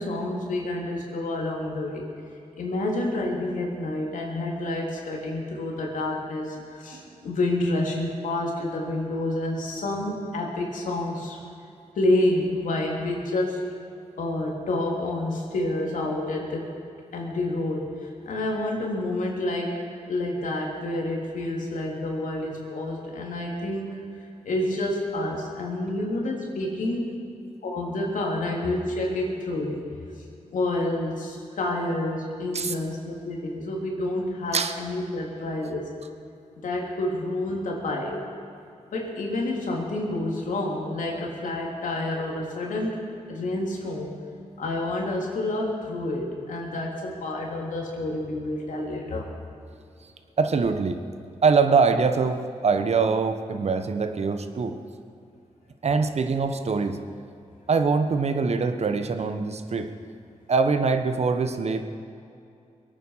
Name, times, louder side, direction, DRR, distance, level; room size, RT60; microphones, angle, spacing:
voice 1, 0.0-2.0 2.6-11.4 11.9-13.6 14.2-16.7 17.1-23.9 24.4-27.2 27.6-29.8 30.5-35.9 36.6-38.2 38.9-43.0 43.3-44.2 44.6-49.3, left 1 dB, 80° left, -1 dB, 3.3 m, -28 dB
voice 2, 50.4-51.0 51.4-54.8 55.8-57.0 57.7-59.9 60.5-61.8, right 4 dB, 55° right, 8 dB, 1.2 m, -23 dB
22.5 x 9.3 x 5.7 m, 2.5 s
cardioid pair, 70°, 13 cm